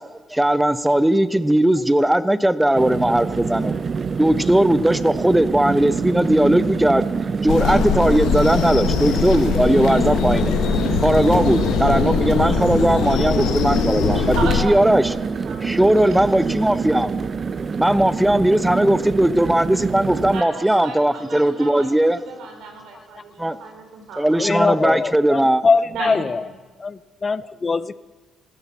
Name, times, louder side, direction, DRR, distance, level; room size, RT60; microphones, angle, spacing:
voice 1, 0.3-3.8 4.2-7.0 7.4-10.5 11.0-14.4 14.6-15.0 15.6-17.1 17.8-22.2 23.4-23.6 24.2-25.6, right 1 dB, 5° right, 0.7 m, -18 dB
sound 1, 2.7-20.4, right 5 dB, 40° right, 0.6 m, -26 dB
sound 2, 7.5-14.6, left 6 dB, 90° left, 1.6 m, -22 dB
voice 2, 14.3-15.2 15.4-16.5 20.3-24.9 25.9-26.5, right 4 dB, 80° right, 3.8 m, -35 dB
voice 3, 24.4-26.5 26.8-27.9, left 4 dB, 35° left, 0.5 m, -22 dB
15.0 x 12.0 x 7.2 m
cardioid pair, 90°, 0 cm